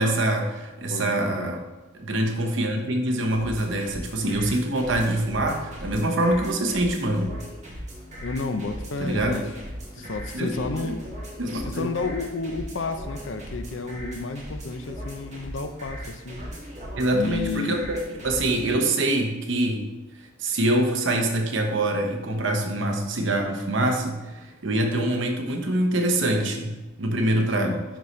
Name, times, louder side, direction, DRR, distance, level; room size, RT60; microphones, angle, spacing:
voice 1, 0.0-1.6 1.9-7.3 9.0-9.4 10.0-11.0 11.4-11.9 17.0-19.9 20.4-27.8, right 1 dB, 70° right, 4 dB, 0.9 m, -25 dB
voice 2, 0.9-1.6 8.2-9.5 10.0-11.0 11.6-16.4 17.1-17.8 27.6-27.8, left 3 dB, 70° left, 8 dB, 0.6 m, -31 dB
sound 1, 3.3-18.7, equal, 35° right, 1.8 m, -38 dB
10.0 x 4.2 x 3.2 m, 1.1 s
head